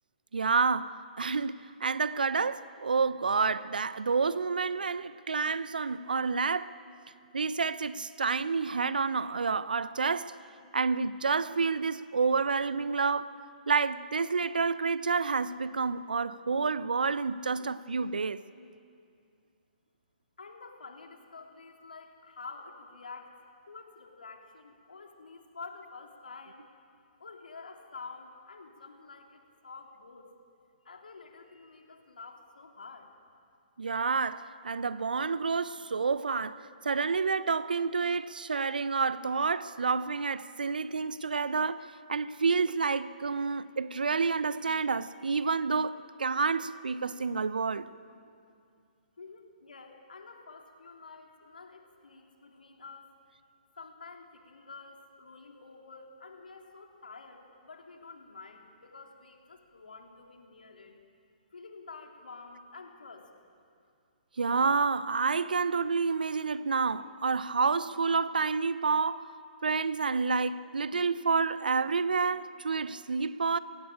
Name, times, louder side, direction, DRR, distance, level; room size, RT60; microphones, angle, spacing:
voice 1, 0.3-6.8 7.3-10.3 10.7-13.3 13.7-18.4 33.8-47.9 64.4-69.3 69.6-73.6, right 4 dB, 75° right, 0.8 m, -29 dB
voice 2, 20.4-23.3 23.7-26.6 27.2-30.3 30.8-33.1 49.2-53.1 53.8-60.9 61.5-63.3, left 4 dB, 75° left, 3.4 m, -49 dB
22.5 x 16.5 x 8.8 m
figure-of-eight pair, 125°, 5 cm